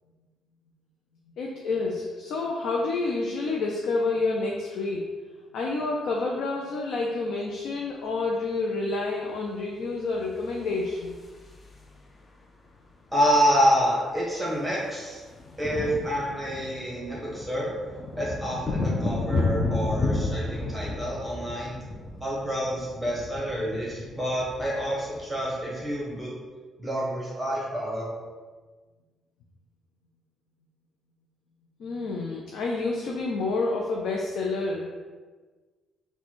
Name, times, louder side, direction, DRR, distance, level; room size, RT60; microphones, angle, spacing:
voice 1, 1.4-5.1 5.5-11.1 31.8-34.9, left 3 dB, 75° left, -1 dB, 0.5 m, -29 dB
sound 1, 10.4-12.0 13.3-13.4 13.6-13.8 14.1-26.2, left 2 dB, 30° left, 0.6 m, -32 dB
voice 2, 13.1-15.2 15.6-17.7 18.2-21.8 22.2-26.3 26.8-28.1, equal, 5° right, -6 dB, 1.3 m, -27 dB
4.0 x 2.3 x 4.5 m, 1.4 s
cardioid pair, 90°, 0 cm